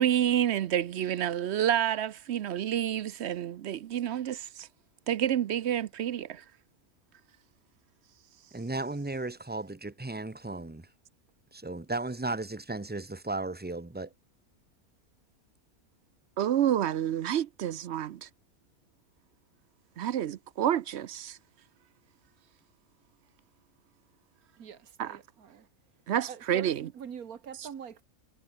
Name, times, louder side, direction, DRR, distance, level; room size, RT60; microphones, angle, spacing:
voice 1, 0.0-4.7 5.1-6.4 16.4-18.3 20.0-21.4 25.0-25.2 26.1-26.9, right 10 dB, 60° right, 0.8 m, -29 dB
voice 2, 8.5-10.9 11.5-14.1, right 2 dB, 15° right, 0.3 m, -35 dB
voice 3, 24.6-25.7 26.3-28.0, right 7 dB, 85° right, 1.9 m, -44 dB
omnidirectional pair, 1.5 m